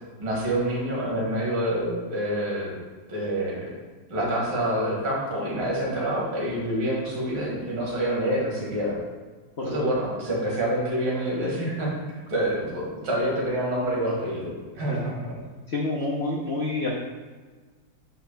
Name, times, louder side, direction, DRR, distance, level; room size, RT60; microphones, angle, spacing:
voice 1, 0.2-2.7 3.1-3.7 4.1-9.0 9.6-15.4, right 1 dB, 75° right, -4 dB, 2.7 m, -27 dB
voice 2, 9.6-9.9 14.9-15.0 15.7-16.9, left 2 dB, 60° left, -2 dB, 0.6 m, -28 dB
9.0 x 5.8 x 2.3 m, 1.4 s
omnidirectional pair, 2.2 m